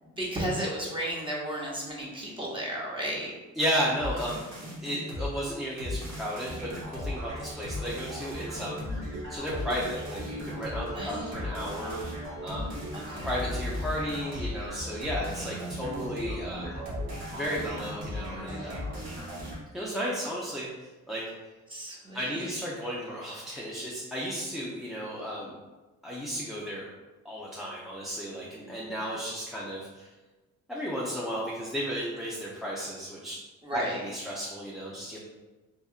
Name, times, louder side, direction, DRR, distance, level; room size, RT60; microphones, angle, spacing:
voice 1, 0.0-3.3 9.1-9.3 10.9-11.4 13.1-13.3 21.7-22.5 33.6-34.0, right 1 dB, 15° right, -4 dB, 0.8 m, -34 dB
voice 2, 3.6-4.4 4.8-8.9 9.3-12.1 12.4-16.8 17.3-18.9 19.7-21.2 22.1-25.5 26.0-26.9 27.2-30.1 30.7-33.4 33.7-35.2, equal, ahead, -6 dB, 0.4 m, -34 dB
sound 1, 4.0-5.3 5.8-19.6, left 1 dB, 60° right, 0.9 m, -36 dB
2.8 x 2.4 x 2.4 m, 1.2 s
cardioid pair, 90°, 30 cm